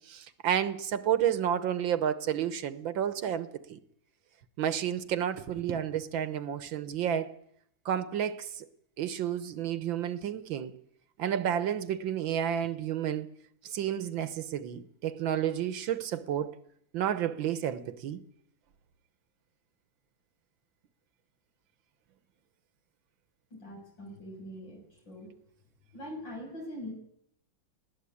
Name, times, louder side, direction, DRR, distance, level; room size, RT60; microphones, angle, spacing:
voice 1, 0.1-3.8 4.6-7.3 7.9-8.7 9.0-10.7 11.2-13.3 13.6-16.5 16.9-18.2, right 9 dB, 85° right, 1.8 m, -31 dB
voice 2, 23.5-25.3 25.9-26.9, equal, 70° left, 7.4 m, -43 dB
20.0 x 15.5 x 8.6 m
omnidirectional pair, 2.1 m